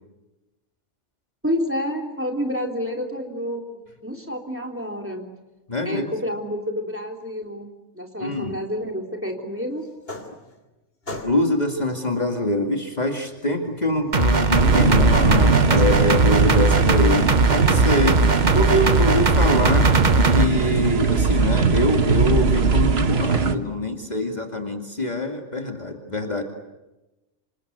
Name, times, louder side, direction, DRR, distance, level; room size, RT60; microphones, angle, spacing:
voice 1, 1.4-5.2 5.9-7.7 7.9-9.8, equal, 10° right, 2 dB, 3.5 m, -29 dB
voice 2, 5.7-6.1 8.2-8.6 11.2-18.3 18.5-19.9 20.2-26.4, left 1 dB, 35° left, 3 dB, 2.5 m, -24 dB
sound 1, 9.8-10.7 11.0-11.7 12.8-22.2, left 4 dB, 55° left, 3.3 m, -41 dB
sound 2, 14.1-20.5, right 3 dB, 40° right, 1.3 m, -19 dB
sound 3, 14.5-23.5, right 5 dB, 60° right, 1.5 m, -20 dB
28.0 x 26.5 x 8.0 m, 1.0 s
omnidirectional pair, 1.2 m